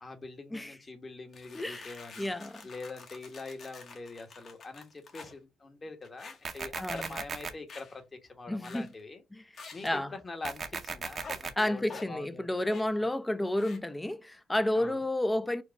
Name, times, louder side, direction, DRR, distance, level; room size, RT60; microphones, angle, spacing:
voice 1, 0.0-2.3 2.6-9.2 9.7-12.6 14.7-15.0, left 3 dB, 30° left, 1.2 m, -44 dB
sound 1, 1.3-5.4 6.0-6.6 6.9-7.2 7.7-8.0 8.6-9.0 9.5-10.0 11.2-11.4 11.8-12.1 12.7-13.0 13.6-13.8, left 4 dB, 50° left, 1.4 m, -48 dB
voice 2, 1.5-2.7 6.8-7.1 8.5-8.9 9.3-9.4 9.8-10.1 11.6-15.6, left 1 dB, 10° left, 0.6 m, -31 dB
sound 2, 6.4-7.5 10.4-11.5, right 5 dB, 45° right, 0.8 m, -37 dB
4.6 x 2.4 x 4.7 m
cardioid pair, 90°, 0 cm